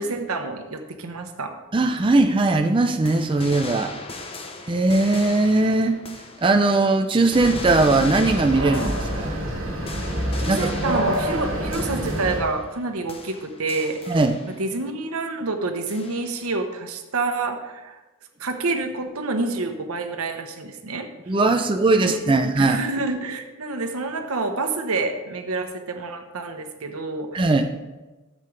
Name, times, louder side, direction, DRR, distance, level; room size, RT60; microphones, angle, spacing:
voice 1, 0.0-1.5 10.4-14.2 14.6-18.0 18.4-21.1 21.9-27.7, right 3 dB, 85° right, 6 dB, 1.0 m, -28 dB
voice 2, 1.7-3.9 4.7-6.0 6.4-9.3 10.5-11.0 14.1-14.4 21.3-22.8 27.3-27.7, right 2 dB, 25° right, 5 dB, 0.4 m, -19 dB
sound 1, 3.1-6.8 7.1-12.8 13.1-14.7 15.9-16.6, left 3 dB, 25° left, 0.8 m, -38 dB
sound 2, 7.3-12.4, right 1 dB, 60° right, 1.9 m, -27 dB
13.0 x 7.5 x 3.3 m, 1.2 s
head